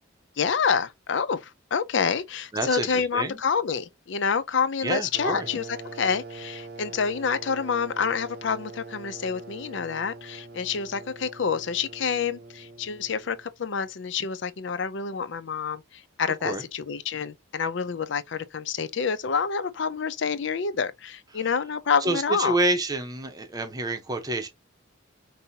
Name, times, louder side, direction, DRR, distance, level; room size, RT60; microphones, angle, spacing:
voice 1, 0.4-5.7 5.9-22.6, left 6 dB, 65° left, 0.5 m, -28 dB
voice 2, 2.5-3.4 4.8-5.5 16.4-16.6 22.0-24.5, right 2 dB, 20° right, 0.8 m, -28 dB
sound 1, 5.1-13.5, right 3 dB, 50° right, 0.6 m, -43 dB
5.4 x 2.7 x 2.8 m
head